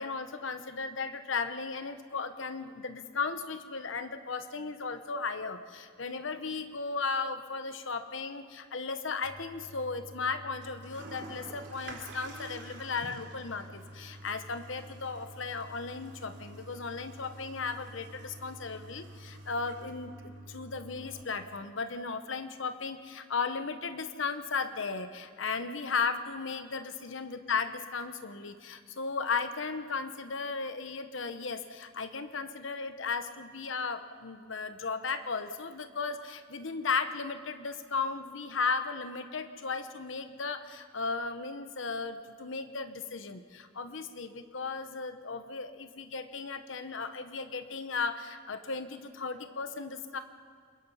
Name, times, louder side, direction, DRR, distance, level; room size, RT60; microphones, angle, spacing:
voice 1, 0.0-50.2, left 4 dB, 75° left, 9 dB, 1.0 m, -35 dB
Toilet flush, 9.2-21.2, right 1 dB, 60° right, 3.9 m, -48 dB
28.0 x 22.0 x 5.6 m, 2.1 s
head